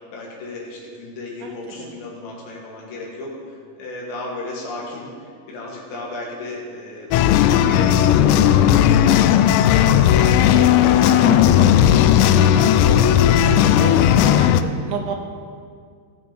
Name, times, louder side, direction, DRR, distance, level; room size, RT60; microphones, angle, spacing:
voice 1, 0.1-8.4 8.9-13.0, left 2 dB, 70° left, -3 dB, 4.2 m, -34 dB
voice 2, 1.4-1.9 13.8-15.2, right 6 dB, 80° right, 4 dB, 3.0 m, -31 dB
sound 1, 7.1-14.6, left 10 dB, 85° left, 2.5 m, -15 dB
18.0 x 7.4 x 4.2 m, 2.1 s
omnidirectional pair, 5.5 m